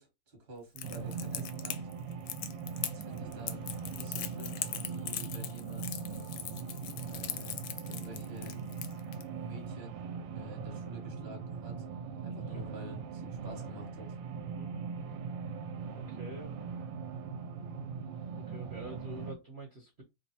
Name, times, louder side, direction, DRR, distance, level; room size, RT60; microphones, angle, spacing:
voice 1, 0.0-1.8 2.9-6.0 7.1-8.6 9.4-10.0 10.3-11.8 12.2-14.1, left 1 dB, 30° right, 1.1 m, -49 dB
Crackle, 0.8-9.2, left 11 dB, 75° left, 1.0 m, -40 dB
sound 1, 0.8-19.3, right 5 dB, 75° right, 1.2 m, -40 dB
voice 2, 12.3-12.6 14.4-14.7 15.9-16.6 18.3-20.0, right 1 dB, 50° right, 0.8 m, -47 dB
3.3 x 2.2 x 4.1 m
omnidirectional pair, 2.2 m